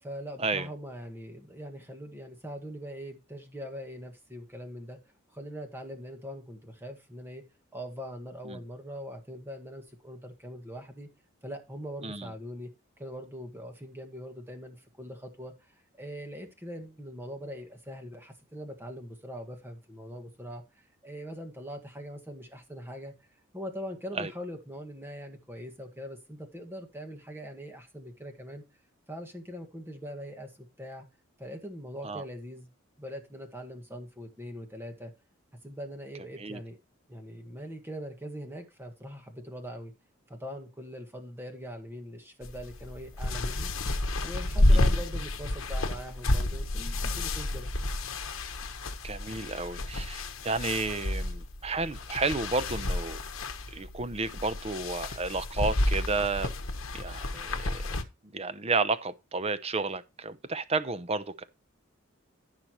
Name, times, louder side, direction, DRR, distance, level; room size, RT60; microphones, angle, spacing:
voice 1, 0.0-5.0 5.3-7.4 7.7-11.1 11.4-12.7 13.0-23.1 23.5-28.6 29.1-31.1 31.4-32.7 33.0-35.1 35.6-36.8 37.1-39.9 40.3-43.7 44.2-47.7, equal, 10° right, 1.7 m, -42 dB
sound 1, 42.4-58.0, left 1 dB, 70° left, 1.2 m, -30 dB
voice 2, 49.0-53.2 53.7-56.5 56.9-58.0 58.2-61.4, right 3 dB, 30° right, 0.7 m, -32 dB
15.0 x 5.7 x 3.1 m
head